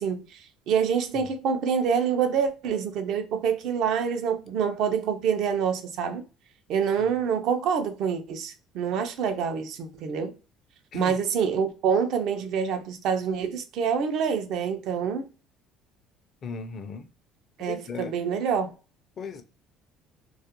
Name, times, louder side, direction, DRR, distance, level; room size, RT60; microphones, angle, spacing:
voice 1, 0.0-6.2 6.7-10.3 10.9-15.3 17.6-18.7, right 7 dB, 65° right, 0.5 m, -26 dB
voice 2, 16.4-17.1 17.7-18.1 19.2-19.4, left 5 dB, 45° left, 0.4 m, -36 dB
2.3 x 2.1 x 2.8 m
supercardioid pair, 100°, 0 cm